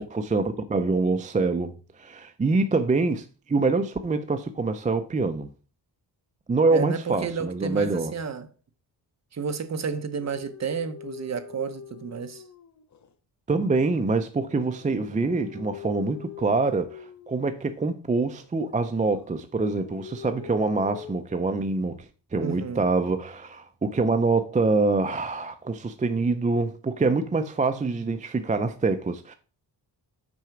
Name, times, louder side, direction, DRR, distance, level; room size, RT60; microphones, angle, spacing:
voice 1, 0.0-5.5 6.5-8.1 13.5-29.3, right 3 dB, 20° right, 0.4 m, -25 dB
voice 2, 6.7-8.5 9.3-12.4 22.4-22.8, right 6 dB, 40° right, 0.8 m, -31 dB
sound 1, 10.2-13.1 13.6-17.9 18.3-19.3 19.6-21.1, left 8 dB, 45° left, 0.6 m, -44 dB
6.1 x 4.8 x 5.8 m
wide cardioid pair, 155°, 42 cm